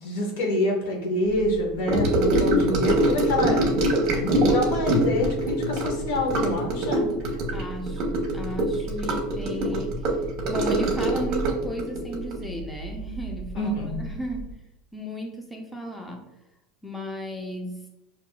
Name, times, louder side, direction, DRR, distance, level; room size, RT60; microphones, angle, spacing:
voice 1, 0.0-3.7 4.1-7.0 13.5-14.0, left 1 dB, 75° left, 0 dB, 1.2 m, -27 dB
Gurgling / Sink (filling or washing) / Trickle dribble, 1.9-13.5 13.8-14.1 14.4-14.5, right 1 dB, 55° right, 1.0 m, -24 dB
voice 2, 7.5-10.2 10.5-14.5 14.9-16.2 16.8-17.8, equal, 10° left, 1 dB, 0.6 m, -34 dB
5.6 x 2.8 x 2.3 m, 0.91 s
supercardioid pair, 110°, 0 cm